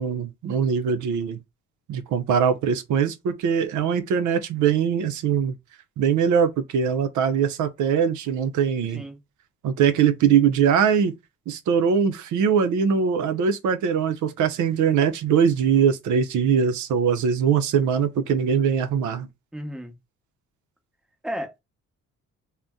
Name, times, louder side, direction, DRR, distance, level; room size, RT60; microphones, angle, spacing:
voice 1, 0.0-1.4 1.9-5.5 6.0-9.0 9.6-11.1 11.5-19.3, right 7 dB, 75° right, 0.6 m, -22 dB
voice 2, 19.5-20.0 21.2-21.6, equal, ahead, 0.8 m, -33 dB
2.6 x 2.1 x 3.5 m
cardioid pair, 90°, 30 cm